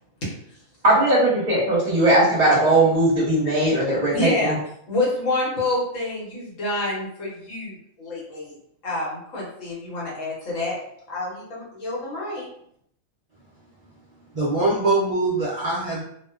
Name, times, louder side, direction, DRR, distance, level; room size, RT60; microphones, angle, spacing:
voice 1, 0.8-4.5, right 1 dB, 35° right, -5 dB, 0.9 m, -19 dB
voice 2, 4.1-4.5 4.9-8.5 8.8-10.8 11.1-12.5, left 2 dB, 80° left, -6 dB, 1.3 m, -27 dB
voice 3, 14.3-16.0, right 2 dB, 80° right, -5 dB, 0.3 m, -22 dB
2.6 x 2.1 x 2.3 m, 0.68 s
omnidirectional pair, 1.3 m